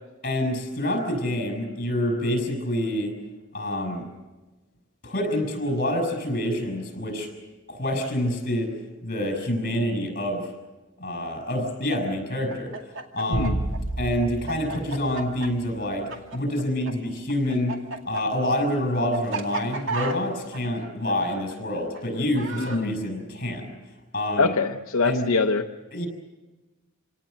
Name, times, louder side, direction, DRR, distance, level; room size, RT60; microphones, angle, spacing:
voice 1, 0.2-3.2 3.5-4.0 5.0-7.3 7.7-8.8 9.0-10.5 11.0-12.8 13.1-13.5 14.0-17.8 18.0-23.7 24.1-24.5 25.0-25.3 25.9-26.1, left 1 dB, 45° left, 5 dB, 6.3 m, -27 dB
Chicken rooster, 12.5-16.9 17.2-22.8, right 3 dB, 65° right, 2.3 m, -33 dB
sound 1, 13.3-15.8, right 1 dB, 45° right, 5.8 m, -30 dB
voice 2, 24.4-25.6, left 4 dB, 75° left, 4 dB, 0.8 m, -23 dB
27.0 x 18.0 x 7.9 m, 1.2 s
head